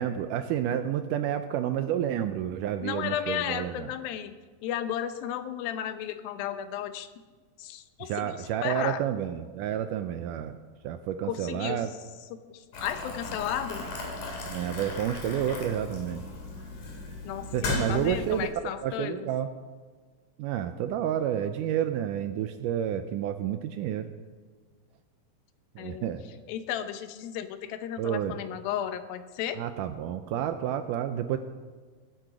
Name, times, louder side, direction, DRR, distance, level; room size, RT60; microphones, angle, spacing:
voice 1, 0.0-3.9 8.0-10.5 10.8-11.9 14.5-16.2 17.5-18.5 18.8-19.5 20.4-24.1 25.8-26.2 28.0-28.4 29.5-31.4, right 10 dB, 80° right, 9 dB, 1.9 m, -30 dB
voice 2, 2.8-4.3 4.6-7.1 7.6-9.0 11.2-11.8 12.5-13.9 17.2-19.3 25.8-26.1 26.5-29.6, left 10 dB, 85° left, 10 dB, 2.6 m, -34 dB
Boiling, 12.7-18.5, left 3 dB, 65° left, 4.1 m, -36 dB
18.0 x 9.3 x 5.0 m, 1.5 s
omnidirectional pair, 4.2 m